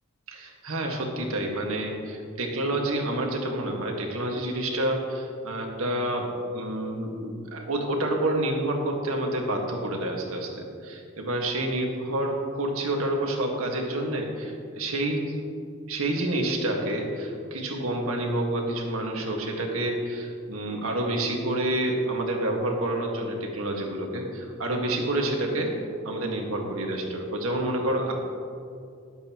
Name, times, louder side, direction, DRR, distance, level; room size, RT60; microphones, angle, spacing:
voice 1, 0.3-10.5 10.8-15.4 15.9-25.7 26.0-28.1, right 1 dB, 85° right, 1 dB, 1.7 m, -28 dB
19.5 x 8.0 x 3.0 m, 2.4 s
head